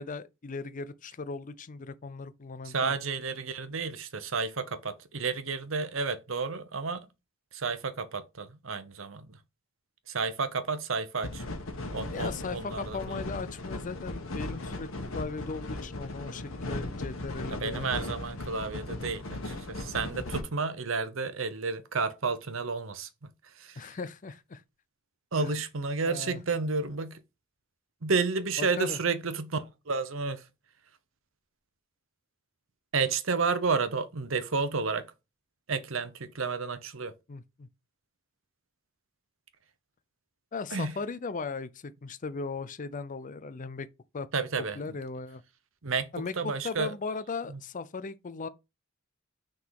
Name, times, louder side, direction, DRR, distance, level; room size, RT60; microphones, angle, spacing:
voice 1, 0.0-2.9 12.1-14.9 15.1-17.9 23.8-24.6 25.4-25.5 26.0-26.4 28.6-29.0 37.3-37.7 40.5-43.9 44.1-44.3 44.7-45.4 46.1-48.5, left 4 dB, 40° left, 0.5 m, -37 dB
voice 2, 2.6-7.1 7.5-9.4 10.1-11.4 11.9-13.2 17.5-23.3 23.6-23.8 25.3-27.2 28.0-30.4 32.9-35.0 35.7-37.1 40.7-40.9 44.3-44.9 45.8-46.9 47.5-47.6, right 4 dB, 65° right, 0.9 m, -31 dB
sound 1, 11.2-20.4, left 2 dB, 75° left, 1.3 m, -37 dB
5.8 x 3.9 x 4.8 m
head